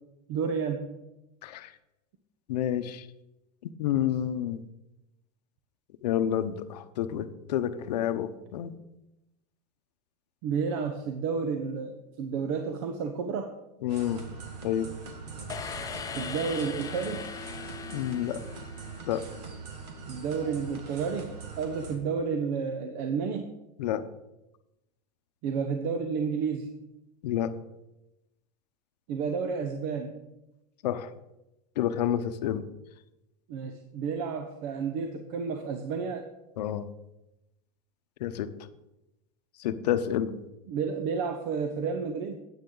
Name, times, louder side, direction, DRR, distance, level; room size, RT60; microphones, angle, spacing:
voice 1, 0.3-1.0 10.4-13.5 16.1-17.3 20.1-23.5 25.4-26.8 29.1-30.1 33.5-36.3 40.7-42.4, right 5 dB, 60° right, 6 dB, 0.9 m, -31 dB
voice 2, 1.4-1.7 2.5-3.1 3.6-4.6 6.0-8.7 13.8-14.2 14.6-14.9 17.9-18.4 19.1-19.2 23.8-24.0 27.2-27.5 30.8-31.1 31.8-32.6 36.6-36.9 38.2-38.5 39.6-40.4, left 10 dB, 85° left, 12 dB, 0.8 m, -29 dB
sound 1, 13.9-22.0, right 5 dB, 85° right, 1.8 m, -42 dB
sound 2, 15.5-19.3, left 6 dB, 15° left, 0.6 m, -40 dB
9.3 x 8.8 x 3.8 m, 0.93 s
supercardioid pair, 130°, 20 cm